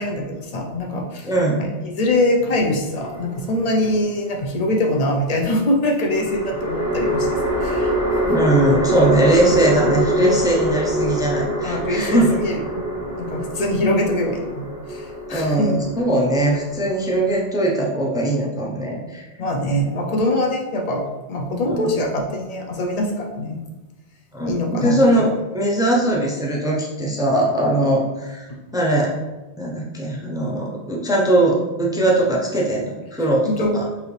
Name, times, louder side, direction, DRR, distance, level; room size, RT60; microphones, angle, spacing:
voice 1, 0.0-1.3 1.6-8.2 11.6-15.7 19.4-21.0 21.3-23.6 24.5-25.3 28.5-28.6 33.4-33.7, left 1 dB, 45° left, 1 dB, 0.5 m, -23 dB
voice 2, 1.2-1.6 8.2-12.4 15.3-19.2 21.6-21.9 24.3-29.1 29.6-33.8, right 1 dB, 5° right, -3 dB, 0.5 m, -20 dB
sound 1, 3.0-3.8 6.1-17.4, right 1 dB, 15° left, 0.8 m, -24 dB
4.8 x 2.8 x 3.2 m, 1.1 s
omnidirectional pair, 1.2 m